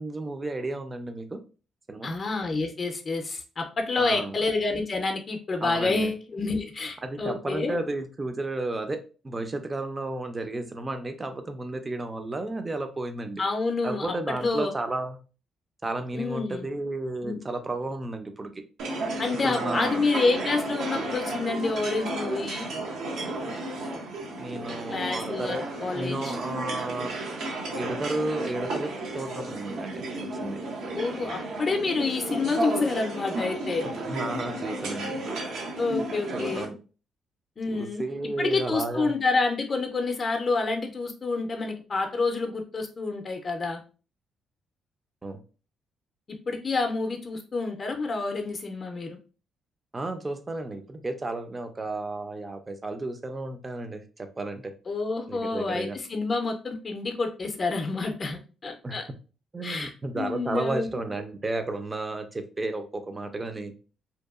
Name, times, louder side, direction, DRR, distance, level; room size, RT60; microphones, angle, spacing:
voice 1, 0.0-1.4 1.9-2.1 4.0-4.4 5.6-6.1 7.0-13.4 13.8-15.2 15.8-18.5 19.4-20.0 24.3-25.6 25.9-27.1 27.7-30.0 30.4-30.6 34.0-35.2 35.9-36.0 36.3-36.8 37.7-39.1 45.2-45.4 49.9-54.7 55.3-56.0 58.8-59.1 59.5-63.7, right 2 dB, 25° right, 7 dB, 0.4 m, -33 dB
voice 2, 2.0-7.8 13.4-14.1 14.4-14.7 16.1-16.7 17.2-17.4 19.2-22.7 24.9-26.4 30.9-33.9 35.8-36.6 37.6-38.0 38.4-43.8 46.5-49.2 54.9-59.0 59.6-60.9, left 3 dB, 40° left, 4 dB, 0.5 m, -28 dB
sound 1, 18.8-36.7, right 2 dB, 80° right, 0.6 m, -33 dB
2.7 x 2.2 x 2.3 m, 0.35 s
cardioid pair, 90°, 0 cm